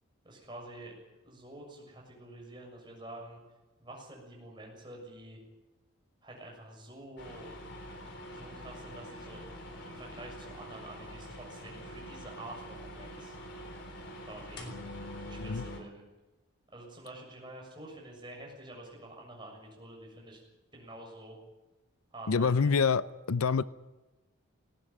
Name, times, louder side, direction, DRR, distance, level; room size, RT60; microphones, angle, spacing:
voice 1, 0.2-0.9 1.2-3.4 3.8-5.4 6.2-7.5 8.3-9.4 9.9-13.4 14.3-14.7 15.2-16.0 16.7-20.4 20.7-21.4 22.1-22.9, right 1 dB, 20° right, -1 dB, 6.8 m, -48 dB
sound 1, 7.2-15.8, equal, 50° left, 3.8 m, -45 dB
voice 2, 22.3-23.0 23.3-23.6, left 5 dB, 80° left, 16 dB, 0.6 m, -26 dB
19.0 x 18.0 x 9.0 m, 1.1 s
head